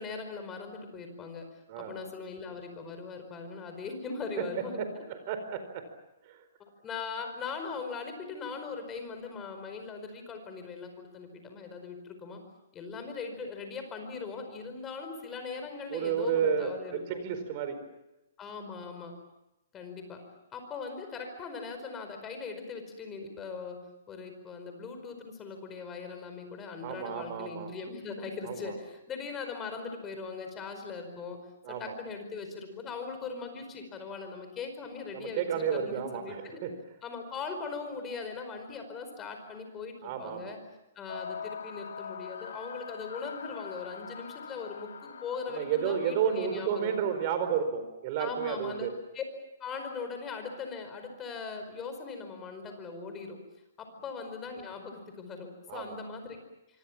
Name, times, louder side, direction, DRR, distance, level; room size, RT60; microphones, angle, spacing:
voice 1, 0.0-1.5 1.8-5.0 6.6-12.4 12.7-17.2 18.4-19.1 19.7-20.2 20.5-23.8 24.1-31.4 31.7-36.6 37.0-40.6 40.9-46.9 48.2-48.9 49.1-49.2 49.6-53.4 53.8-56.4, left 5 dB, 15° left, 6 dB, 4.8 m, -40 dB
voice 2, 4.8-5.8 6.3-6.4 15.9-17.8 26.8-27.7 28.4-28.7 31.6-31.9 35.1-36.7 40.0-40.6 45.5-48.9 55.7-56.0, right 7 dB, 35° right, 9 dB, 4.5 m, -32 dB
sound 1, 41.1-47.4, left 6 dB, 85° left, 2.2 m, -43 dB
26.0 x 25.0 x 7.4 m, 0.91 s
hypercardioid pair, 160°, 0 cm